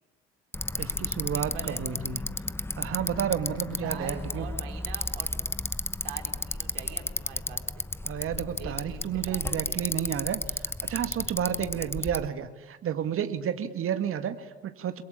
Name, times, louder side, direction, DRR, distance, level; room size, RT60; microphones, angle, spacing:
Bicycle, 0.5-12.3, left 2 dB, 10° left, 1.0 m, -33 dB
voice 1, 0.8-2.4 2.8-4.5 8.0-15.0, right 9 dB, 45° right, 9 dB, 2.1 m, -31 dB
voice 2, 1.3-1.8 2.9-3.1 3.8-5.3 6.0-7.9 8.6-9.9, right 7 dB, 75° right, 4 dB, 4.3 m, -44 dB
29.5 x 22.5 x 8.6 m, 1.3 s
hypercardioid pair, 60°, 30 cm